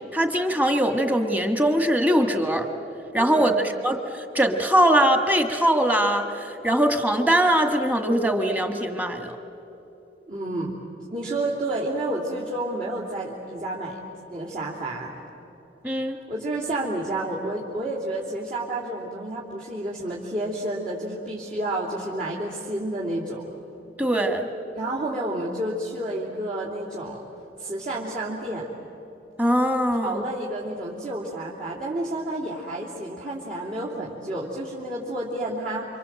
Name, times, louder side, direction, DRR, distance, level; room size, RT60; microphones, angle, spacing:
voice 1, 0.1-2.7 3.1-9.4 15.8-16.2 24.0-24.5 29.4-30.2, right 1 dB, 10° right, 5 dB, 1.6 m, -22 dB
voice 2, 3.2-3.6 10.3-10.7 11.1-14.0 14.3-15.2 16.3-23.5 24.7-27.2 27.6-28.8 30.0-35.8, right 1 dB, 45° right, -7 dB, 3.1 m, -30 dB
29.0 x 26.0 x 7.7 m, 3.0 s
head